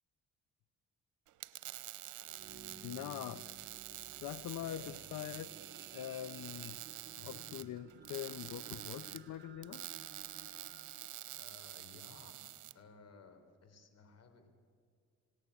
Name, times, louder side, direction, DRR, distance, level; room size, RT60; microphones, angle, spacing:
sound 1, 1.3-12.7, right 15 dB, 80° right, 1.0 m, -48 dB
sound 2, 2.0-12.5 13.1-13.2, right 6 dB, 40° right, 1.1 m, -57 dB
voice 1, 2.8-3.5 4.2-5.5 5.9-6.8 7.3-9.9, left 12 dB, 75° left, 16 dB, 0.7 m, -43 dB
voice 2, 4.6-5.1 7.2-7.5 11.4-14.5, left 4 dB, 55° left, 8 dB, 4.1 m, -57 dB
27.5 x 18.0 x 8.6 m, 2.3 s
cardioid pair, 90°, 30 cm